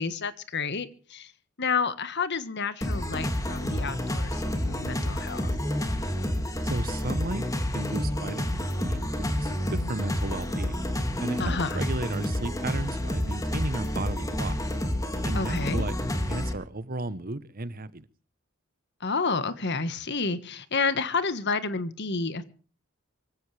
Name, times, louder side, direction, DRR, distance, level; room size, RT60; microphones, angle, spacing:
voice 1, 0.0-1.3 1.6-5.5 11.4-11.8 15.3-15.9 19.0-22.4, left 4 dB, 55° left, 1.6 m, -30 dB
sound 1, 2.8-16.5, left 1 dB, 15° left, 2.6 m, -29 dB
voice 2, 6.6-7.4 7.7-10.8 11.2-14.6 15.2-18.1, right 2 dB, 45° right, 1.1 m, -35 dB
24.5 x 16.0 x 3.4 m
head